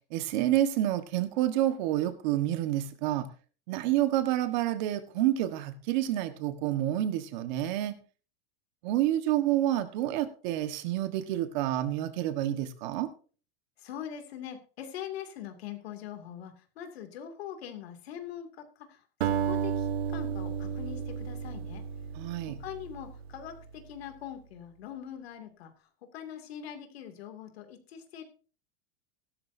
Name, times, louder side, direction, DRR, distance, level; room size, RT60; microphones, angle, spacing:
voice 1, 0.1-3.3 3.7-7.9 8.8-13.1 22.2-22.6, right 13 dB, 45° right, 10 dB, 1.5 m, -28 dB
voice 2, 13.8-19.0 19.4-21.8 22.6-28.2, left 9 dB, 80° left, 6 dB, 2.7 m, -42 dB
Acoustic guitar, 19.2-23.7, right 7 dB, 85° right, 1.8 m, -33 dB
15.5 x 13.0 x 2.7 m, 0.37 s
supercardioid pair, 175°, 31 cm